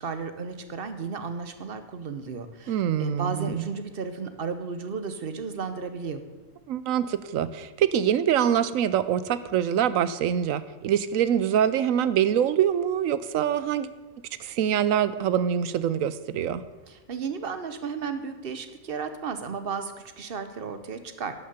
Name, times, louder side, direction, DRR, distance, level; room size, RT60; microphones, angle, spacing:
voice 1, 0.0-6.2 16.9-21.3, right 5 dB, 50° right, 9 dB, 1.0 m, -34 dB
voice 2, 2.7-3.7 6.7-13.9 14.4-16.6, right 9 dB, 80° right, 15 dB, 1.0 m, -24 dB
11.5 x 6.5 x 6.7 m, 1.2 s
omnidirectional pair, 1.4 m